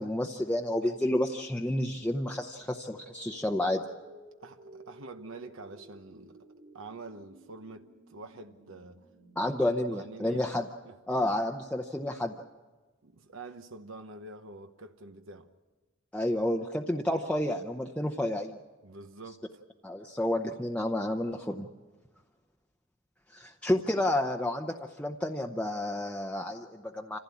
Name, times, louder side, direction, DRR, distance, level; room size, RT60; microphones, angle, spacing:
voice 1, 0.0-3.8 9.4-10.7 11.1-12.3 16.1-18.6 19.8-21.7 23.3-27.2, left 1 dB, 5° left, 0.7 m, -30 dB
sound 1, 2.3-11.2, right 1 dB, 55° right, 3.3 m, -55 dB
voice 2, 4.4-6.5 6.7-9.1 9.7-10.5 10.8-11.0 13.0-15.5 18.8-19.5, right 3 dB, 75° right, 1.0 m, -46 dB
27.0 x 15.5 x 8.4 m
head